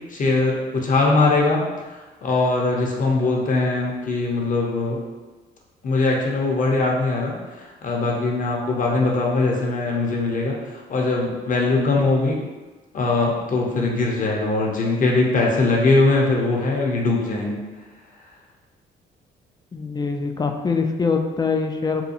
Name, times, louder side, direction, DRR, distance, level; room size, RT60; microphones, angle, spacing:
voice 1, 0.1-1.6 1.9-5.0 5.8-7.4 7.8-12.4 12.9-17.6, left 3 dB, 40° left, -1 dB, 0.7 m, -21 dB
voice 2, 19.7-22.0, left 4 dB, 20° left, 4 dB, 0.3 m, -23 dB
2.9 x 2.2 x 2.5 m, 1.2 s
supercardioid pair, 55°, 21 cm